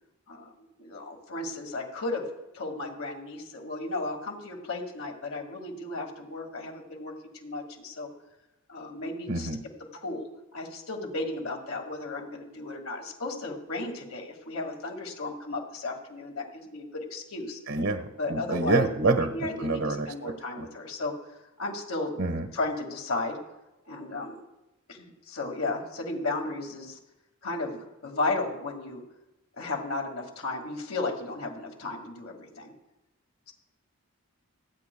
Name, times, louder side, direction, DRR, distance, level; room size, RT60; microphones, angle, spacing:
voice 1, 0.8-2.2 2.5-7.1 7.4-8.1 8.7-9.5 9.9-10.2 10.5-17.6 18.2-18.9 19.3-21.1 21.6-22.1 22.5-23.4 23.9-24.4 24.9-27.0 27.4-29.0 29.6-32.7, left 2 dB, 75° left, 1 dB, 2.1 m, -34 dB
voice 2, 9.3-9.6 17.7-20.7 22.2-22.5, right 3 dB, 75° right, 7 dB, 1.3 m, -27 dB
27.5 x 9.4 x 2.3 m, 0.95 s
head